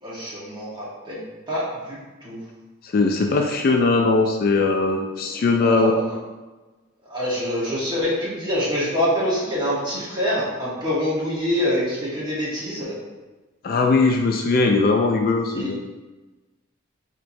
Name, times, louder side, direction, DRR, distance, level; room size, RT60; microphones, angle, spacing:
voice 1, 0.0-2.4 5.1-5.2 5.6-6.1 7.1-13.0 15.5-15.7, equal, 20° right, -7 dB, 1.1 m, -25 dB
voice 2, 2.8-5.9 13.6-15.8, left 3 dB, 45° left, 2 dB, 0.3 m, -20 dB
4.4 x 2.9 x 2.6 m, 1.2 s
head